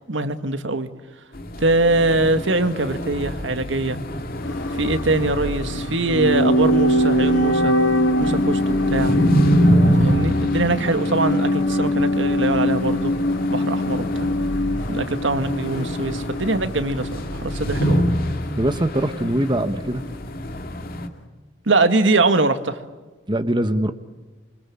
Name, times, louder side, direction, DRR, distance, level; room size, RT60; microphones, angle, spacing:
voice 1, 0.1-0.9 1.6-4.0 4.7-7.7 8.2-9.2 10.0-13.1 13.5-14.3 14.9-18.1 21.7-22.8, right 2 dB, 75° right, 9 dB, 1.8 m, -22 dB
sound 1, 1.3-21.1, equal, 50° left, 2.3 m, -26 dB
sound 2, 4.4-18.5 18.7-18.8, left 1 dB, 80° left, 2.1 m, -23 dB
voice 2, 9.7-10.0 18.6-20.0 23.3-23.9, right 1 dB, 25° right, 9 dB, 1.2 m, -22 dB
27.5 x 25.0 x 8.6 m, 1.3 s
head